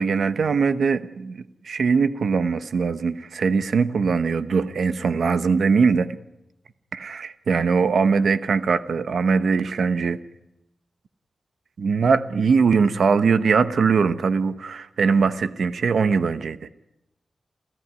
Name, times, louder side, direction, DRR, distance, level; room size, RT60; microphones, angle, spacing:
voice 1, 0.0-6.2 6.9-10.2 11.8-16.7, right 5 dB, 75° right, 12 dB, 1.1 m, -21 dB
29.0 x 14.5 x 9.7 m, 0.90 s
wide cardioid pair, 135°, 0 cm